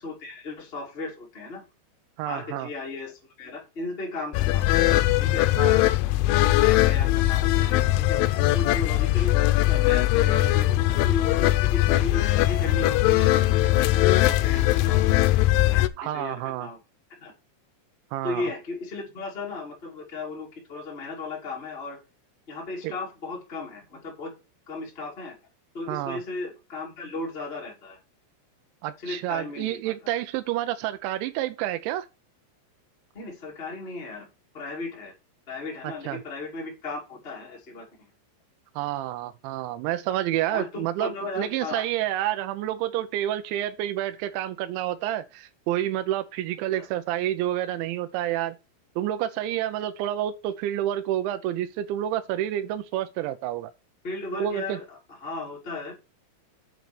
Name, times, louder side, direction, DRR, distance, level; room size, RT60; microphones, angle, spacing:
voice 1, 0.0-1.6 2.2-5.5 6.4-9.3 9.7-15.2 15.6-15.8 16.1-16.8 17.2-17.3 18.2-22.0 22.5-24.3 24.7-25.3 25.7-28.0 29.0-30.1 33.1-34.2 34.5-35.1 35.5-38.1 40.5-41.8 46.7-46.9 54.0-55.9, left 3 dB, 40° left, 0.8 m, -36 dB
voice 2, 2.2-2.7 5.6-5.8 16.0-16.7 18.1-18.4 22.8-22.9 25.9-26.2 28.8-32.1 36.0-36.2 38.8-48.6 49.0-53.7 54.3-54.8, right 12 dB, 85° right, 2.6 m, -29 dB
sound 1, 4.3-15.9, left 16 dB, 85° left, 2.8 m, -21 dB
8.1 x 4.1 x 6.6 m
omnidirectional pair, 5.9 m